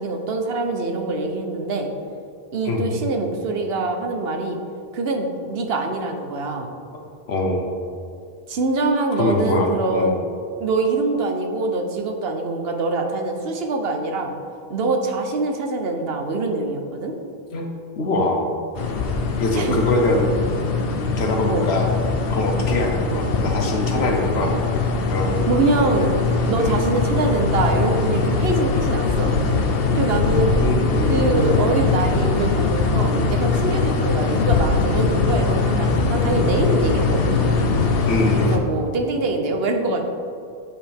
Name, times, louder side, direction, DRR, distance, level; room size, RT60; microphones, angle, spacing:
voice 1, 0.0-1.9 2.5-4.6 4.9-6.7 8.5-10.2 10.6-14.3 14.7-17.1 19.5-19.7 21.5-21.7 25.4-26.1 26.5-29.3 29.9-30.6 31.1-37.5 38.5-40.0, right 2 dB, 75° right, 4 dB, 1.0 m, -24 dB
voice 2, 7.3-7.7 9.2-10.2 17.5-17.7 18.0-18.5 19.4-20.3 21.2-21.9 22.3-24.6 25.1-25.5 26.6-26.8 30.6-31.7 38.1-38.6, left 2 dB, 85° left, 2 dB, 1.2 m, -23 dB
sound 1, 18.7-38.6, left 4 dB, 70° left, 0.9 m, -21 dB
8.8 x 5.1 x 3.5 m, 2.5 s
omnidirectional pair, 1.0 m